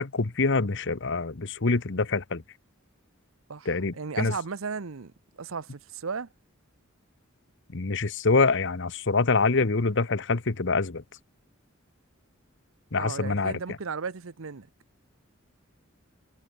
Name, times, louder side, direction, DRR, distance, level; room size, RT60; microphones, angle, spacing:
voice 1, 0.0-2.4 3.7-4.3 7.7-11.0 12.9-13.6, left 3 dB, 65° left, 1.1 m, -25 dB
voice 2, 3.5-5.1 5.4-6.3 13.0-14.7, right 5 dB, 90° right, 0.8 m, -35 dB
head